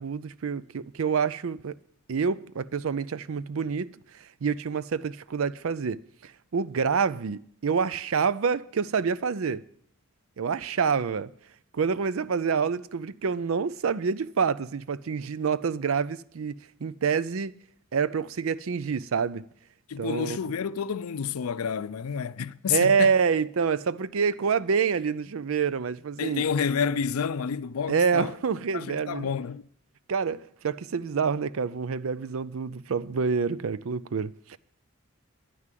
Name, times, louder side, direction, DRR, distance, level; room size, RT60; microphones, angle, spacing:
voice 1, 0.0-1.8 2.1-9.6 10.4-11.3 11.7-17.5 17.9-19.4 20.0-20.4 22.7-26.4 27.9-29.3 30.1-34.6, right 6 dB, 75° right, 0.5 m, -27 dB
voice 2, 19.9-23.2 26.2-28.4 28.7-29.7, left 7 dB, 90° left, 0.5 m, -29 dB
11.0 x 9.8 x 7.5 m
head